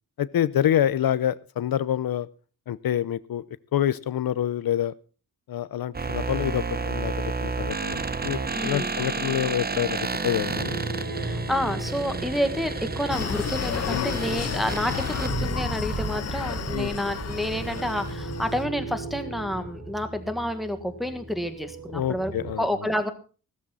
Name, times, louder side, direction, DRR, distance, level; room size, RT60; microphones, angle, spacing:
voice 1, 0.2-2.3 2.7-3.4 3.7-4.9 5.5-10.8 13.9-14.2 16.7-17.0 21.9-22.7, left 11 dB, 85° left, 17 dB, 0.6 m, -27 dB
sound 1, 5.9-18.1, right 4 dB, 25° right, 0.8 m, -31 dB
voice 2, 8.5-8.9 11.2-22.3 22.6-23.1, equal, ahead, 7 dB, 1.6 m, -29 dB
sound 2, 10.5-22.6, right 2 dB, 50° right, 4.2 m, -37 dB
Screaming, 13.1-18.6, left 8 dB, 50° left, 0.6 m, -32 dB
15.0 x 13.5 x 4.1 m, 0.36 s
wide cardioid pair, 135°, 35 cm